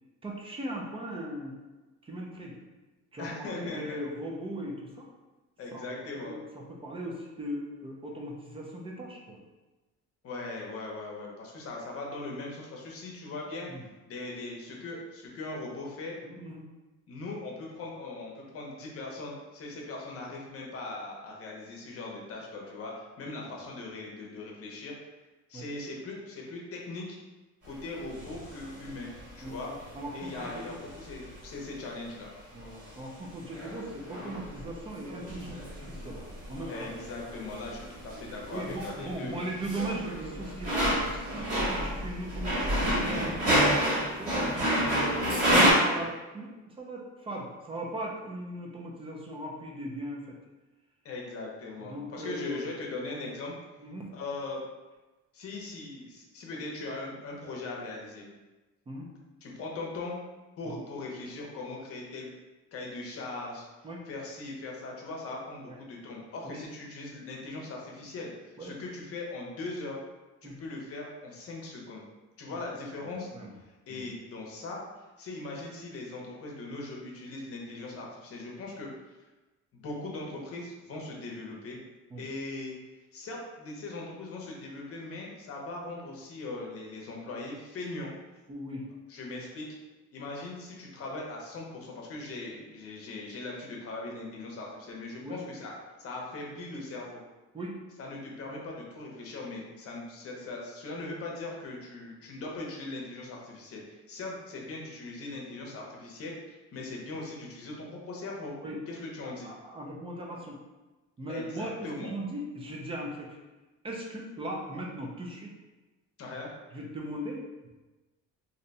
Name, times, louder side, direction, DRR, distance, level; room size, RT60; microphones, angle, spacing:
voice 1, 0.2-1.5 2.0-2.5 3.1-5.1 5.7-5.9 6.2-9.4 13.7-13.8 16.2-16.6 25.5-25.7 29.4-30.8 32.5-36.2 36.5-36.9 38.5-43.7 44.0-44.4 44.9-50.4 51.8-52.6 53.8-54.1 58.9-59.1 60.6-60.7 63.8-64.0 66.4-66.6 68.6-68.7 70.4-70.6 73.0-73.6 73.9-74.2 82.1-82.2 88.5-88.8 95.2-95.4 97.5-97.8 108.6-108.8 109.2-110.6 111.2-111.7 112.0-113.4 113.8-115.5 116.7-117.7, right 1 dB, 20° right, -1 dB, 0.4 m, -39 dB
voice 2, 3.2-4.0 5.6-6.3 10.2-13.7 14.1-16.2 17.1-25.0 25.5-27.2 27.6-29.1 29.4-29.7 30.1-32.3 36.7-39.4 45.0-45.5 51.0-53.5 54.1-54.6 55.3-58.3 59.4-60.2 60.6-62.3 62.7-63.7 64.1-70.0 70.4-72.0 72.4-73.3 73.9-78.9 79.7-81.8 82.2-82.8 83.1-88.1 89.1-89.7 90.1-95.7 96.0-97.2 98.0-108.5 108.9-109.5 111.3-112.1 116.2-116.5, left 2 dB, 50° left, -1 dB, 0.8 m, -40 dB
sound 1, 28.1-31.4 32.6-32.9 33.5-34.7 35.0-45.7, equal, 55° right, 1.4 m, -29 dB
2.7 x 2.2 x 3.9 m, 1.1 s
cardioid pair, 160°, 29 cm